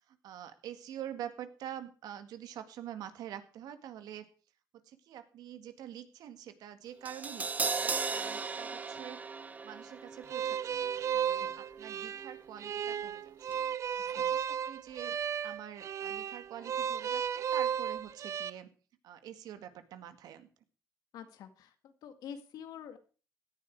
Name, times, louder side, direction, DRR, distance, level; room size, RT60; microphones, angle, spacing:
voice 1, 0.1-4.3 4.9-9.2 9.6-13.6 14.1-18.7 19.0-20.5, right 10 dB, 75° right, 9 dB, 2.0 m, -46 dB
Crash cymbal, 7.1-13.2 13.5-13.6, right 4 dB, 25° right, 1.1 m, -38 dB
sound 1, 10.3-18.5, right 9 dB, 50° right, 0.7 m, -34 dB
voice 2, 21.1-23.0, left 8 dB, 75° left, 9 dB, 2.1 m, -47 dB
17.0 x 10.5 x 4.7 m, 0.38 s
cardioid pair, 115°, 7 cm